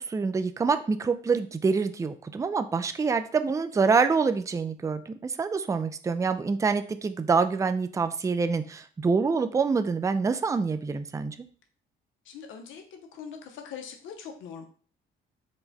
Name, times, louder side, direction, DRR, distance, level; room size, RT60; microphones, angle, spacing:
voice 1, 0.1-11.4, right 5 dB, 15° right, 10 dB, 0.3 m, -26 dB
voice 2, 12.2-14.7, left 7 dB, 80° left, 4 dB, 0.7 m, -42 dB
4.7 x 2.2 x 4.0 m, 0.43 s
cardioid pair, 90°, 20 cm